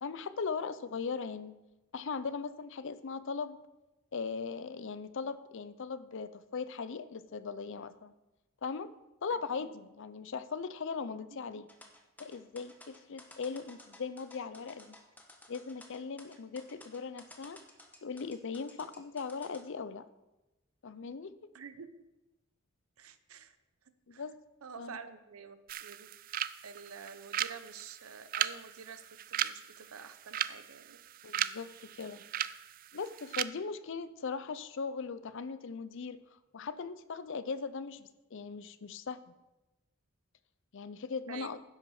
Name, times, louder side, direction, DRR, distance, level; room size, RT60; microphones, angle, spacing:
voice 1, 0.0-1.6 1.9-3.6 4.1-8.1 8.6-8.9 9.2-11.7 12.2-15.0 15.5-17.6 18.0-20.0 20.8-21.4 24.1-24.4 24.8-25.0 31.2-31.7 32.0-32.2 32.9-36.2 36.5-39.2 40.7-41.6, left 5 dB, 60° left, 14 dB, 0.5 m, -39 dB
sound 1, 11.7-19.6, left 1 dB, 10° left, 1.0 m, -55 dB
voice 2, 21.5-21.9 23.0-23.6 24.1-24.2 24.6-26.1 26.6-29.0 29.3-31.0 41.3-41.6, right 6 dB, 90° right, 11 dB, 0.8 m, -48 dB
sound 2, 25.7-33.4, right 11 dB, 40° right, 0.3 m, -38 dB
10.5 x 7.8 x 4.8 m, 1.0 s
head